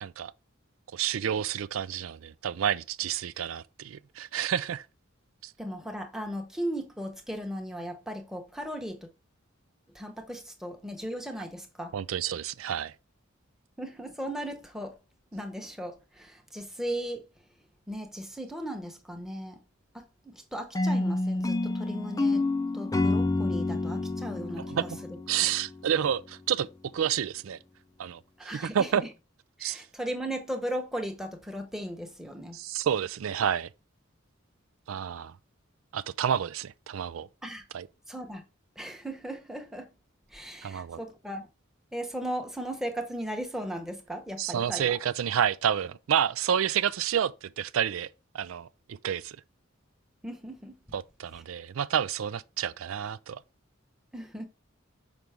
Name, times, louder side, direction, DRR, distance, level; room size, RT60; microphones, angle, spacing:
voice 1, 0.0-0.3 0.9-4.9 5.4-5.5 11.9-12.9 24.6-25.0 25.3-26.7 26.9-27.6 28.0-29.0 29.6-29.8 32.5-33.7 34.9-35.3 35.9-37.3 37.7-37.9 40.6-41.0 44.4-48.1 48.3-49.4 50.9-53.4, right 9 dB, 75° right, 0.4 m, -29 dB
voice 2, 5.6-9.1 9.9-11.9 13.8-15.0 15.3-17.2 17.9-19.6 19.9-22.4 22.7-24.7 28.4-29.1 29.6-32.6 37.4-37.6 38.1-38.4 38.8-39.9 40.3-41.5 41.9-45.0 50.2-50.8 54.1-54.5, equal, ahead, 1.0 m, -37 dB
sound 1, 20.7-25.9, left 2 dB, 15° left, 0.5 m, -28 dB
6.1 x 5.2 x 3.4 m
head